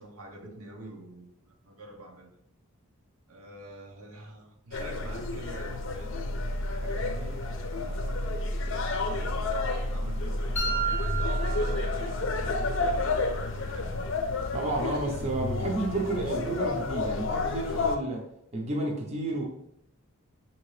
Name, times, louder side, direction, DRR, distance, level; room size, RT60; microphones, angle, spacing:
voice 1, 0.0-2.3 3.3-6.3 6.6-9.4 9.9-10.9 13.3-14.3, right 2 dB, 80° right, 2 dB, 0.8 m, -46 dB
sound 1, 4.7-18.0, left 2 dB, 55° left, 0.5 m, -30 dB
sound 2, 10.6-12.6, right 4 dB, 10° left, 0.6 m, -33 dB
voice 2, 14.5-18.2 18.5-19.4, right 2 dB, 30° right, -1 dB, 0.6 m, -31 dB
5.4 x 2.8 x 3.1 m, 0.77 s
head